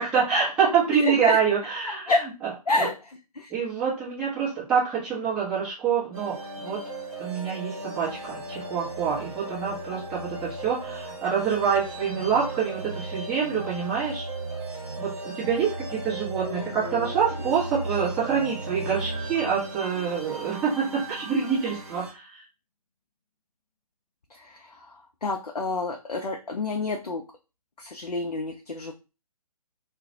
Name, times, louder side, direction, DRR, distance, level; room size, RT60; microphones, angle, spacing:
voice 1, 0.0-2.1 2.7-2.9 3.5-6.4 6.6-6.8 7.2-14.3 15.0-22.4, right 6 dB, 5° right, -10 dB, 0.7 m, -26 dB
voice 2, 0.9-1.4 2.1-2.2 2.7-3.5 16.4-17.2 24.3-27.2 27.8-28.9, left 3 dB, 90° left, 3 dB, 0.4 m, -29 dB
sound 1, 6.1-22.1, right 2 dB, 45° right, 1.0 m, -36 dB
2.3 x 2.2 x 2.7 m, 0.30 s
figure-of-eight pair, 135°, 19 cm